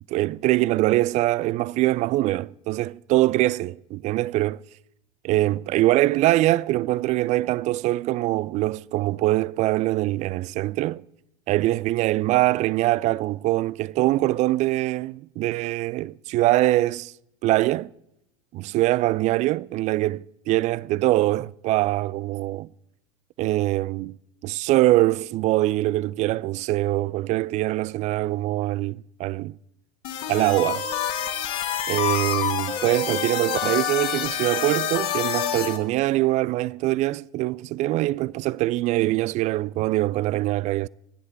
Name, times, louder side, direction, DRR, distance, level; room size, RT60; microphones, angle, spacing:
voice 1, 0.1-4.6 5.2-11.0 11.5-17.1 17.4-17.9 18.5-22.7 23.4-24.2 24.4-29.6 30.3-30.9 31.9-40.9, right 17 dB, 40° right, 0.4 m, -23 dB
sound 1, 30.0-35.8, left 9 dB, 55° left, 2.4 m, -27 dB
27.5 x 9.9 x 4.0 m
figure-of-eight pair, 80°, 18 cm